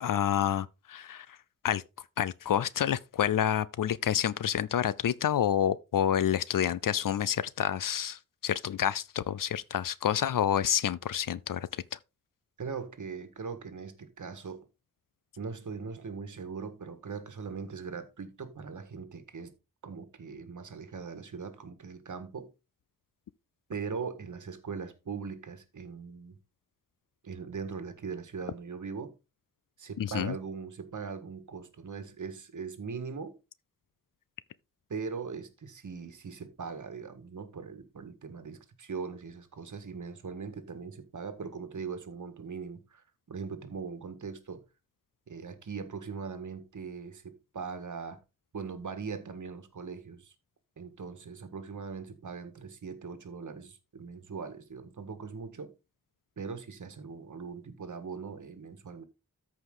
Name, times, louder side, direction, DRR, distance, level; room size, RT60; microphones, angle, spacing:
voice 1, 0.0-1.4 1.6-1.8 2.2-12.0 30.0-30.3, left 9 dB, 75° left, 0.5 m, -28 dB
voice 2, 12.6-14.6 15.4-19.5 19.8-22.5 23.7-26.4 27.2-29.1 29.8-33.4 34.9-44.6 45.3-48.2 48.5-50.3 50.8-55.7 56.4-59.0, right 5 dB, 60° right, 1.6 m, -40 dB
13.5 x 5.0 x 3.8 m
wide cardioid pair, 150°, 34 cm